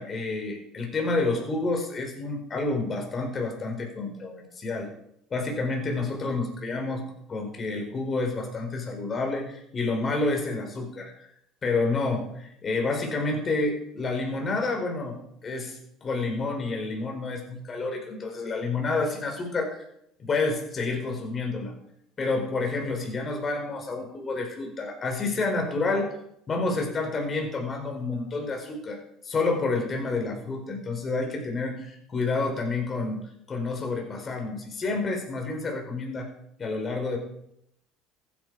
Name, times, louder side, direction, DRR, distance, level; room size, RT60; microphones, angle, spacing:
voice 1, 0.0-4.9 5.3-7.0 7.3-11.1 11.6-19.9 20.2-21.7 22.2-26.1 26.5-33.2 33.5-36.3 36.6-37.2, left 3 dB, 35° left, 2 dB, 4.5 m, -29 dB
15.0 x 10.0 x 4.8 m, 0.76 s
hypercardioid pair, 75°, 0 cm